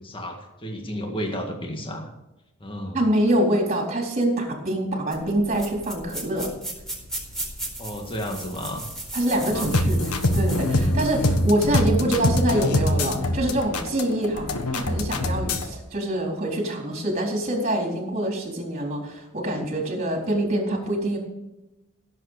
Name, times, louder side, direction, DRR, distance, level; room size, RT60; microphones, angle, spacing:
voice 1, 0.0-2.1 2.6-3.0 7.8-8.9 9.3-9.7, equal, 25° left, 2 dB, 1.9 m, -32 dB
voice 2, 2.9-6.5 9.1-21.2, right 1 dB, 30° right, 1 dB, 4.0 m, -25 dB
sound 1, 5.1-11.9, right 1 dB, ahead, 4.3 m, -37 dB
sound 2, 9.5-15.7, left 1 dB, 75° left, 1.4 m, -24 dB
16.5 x 7.8 x 6.5 m, 0.96 s
head